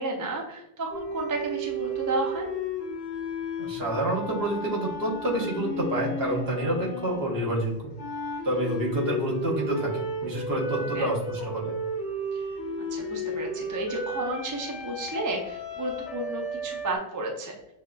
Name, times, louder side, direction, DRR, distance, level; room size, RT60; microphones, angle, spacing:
voice 1, 0.0-2.5 8.6-8.7 10.9-11.1 12.3-12.4 12.9-17.6, right 2 dB, 25° right, 1 dB, 0.4 m, -32 dB
sound 1, 0.9-7.5 8.0-17.0, equal, 80° left, 1.0 m, -34 dB
voice 2, 3.6-7.8 8.4-11.7, right 1 dB, 65° right, -3 dB, 1.3 m, -28 dB
6.0 x 2.4 x 2.2 m, 0.87 s
omnidirectional pair, 1.1 m